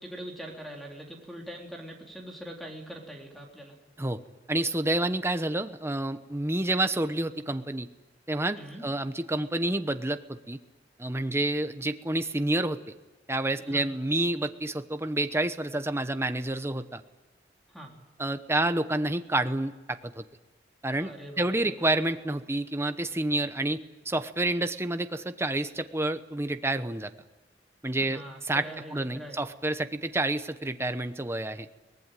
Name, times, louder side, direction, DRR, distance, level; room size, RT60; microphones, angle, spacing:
voice 1, 0.0-3.8 8.6-8.8 13.6-13.9 17.7-17.9 20.9-21.8 28.0-29.4, right 1 dB, ahead, 0 dB, 3.5 m, -43 dB
voice 2, 4.5-7.9 8.3-10.6 11.0-12.8 13.3-17.0 18.2-20.2 20.8-21.1 21.4-23.8 24.0-27.1 27.8-28.6 28.9-31.7, right 1 dB, 15° right, 9 dB, 1.0 m, -29 dB
24.0 x 19.0 x 9.2 m, 1.1 s
head